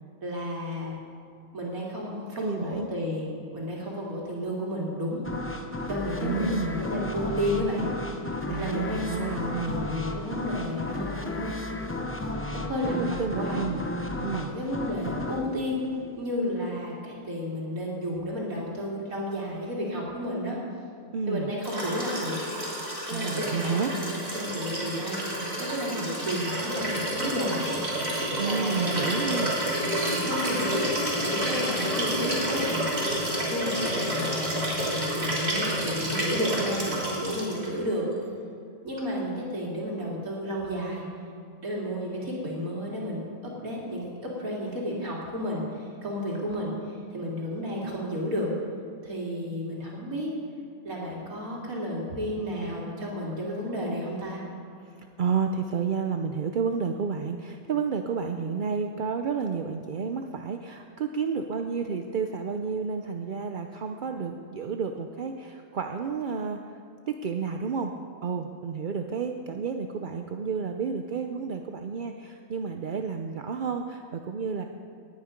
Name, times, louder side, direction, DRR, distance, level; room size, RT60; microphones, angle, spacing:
voice 1, 0.2-1.0 1.5-5.2 5.9-7.9 8.6-11.5 12.5-13.6 14.3-15.8 16.2-20.6 21.3-22.4 23.1-27.7 28.4-29.3 30.1-30.7 31.2-32.9 33.5-38.1 38.8-41.0 41.6-48.5 49.0-50.3 50.8-54.4, equal, 75° right, -4 dB, 3.1 m, -32 dB
voice 2, 2.3-2.9 6.2-6.8 8.5-9.8 12.9-13.9 14.2-14.5 21.1-21.5 23.1-23.9 28.4-29.5 55.2-66.6 67.1-67.9 68.2-74.6, right 5 dB, 55° right, 5 dB, 0.5 m, -31 dB
sound 1, 5.2-16.7, left 1 dB, 10° left, 0.7 m, -34 dB
Liquid, 21.6-37.7 39.0-39.1, equal, 30° right, 3.2 m, -29 dB
19.0 x 9.5 x 5.2 m, 2.4 s
omnidirectional pair, 1.5 m